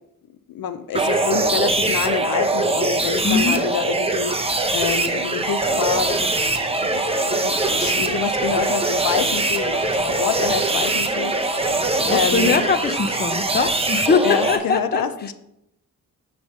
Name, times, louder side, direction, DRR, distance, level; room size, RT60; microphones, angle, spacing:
voice 1, 0.5-11.8 12.1-12.7 14.2-15.3, left 7 dB, 85° left, 10 dB, 0.6 m, -27 dB
sound 1, 0.9-14.6, right 2 dB, 15° right, 0.8 m, -22 dB
voice 2, 3.2-3.6 12.1-15.0, left 4 dB, 30° left, 8 dB, 0.6 m, -21 dB
sound 2, 5.1-13.1, left 1 dB, 10° left, 2.4 m, -39 dB
9.5 x 3.3 x 6.5 m, 0.83 s
wide cardioid pair, 120°, 34 cm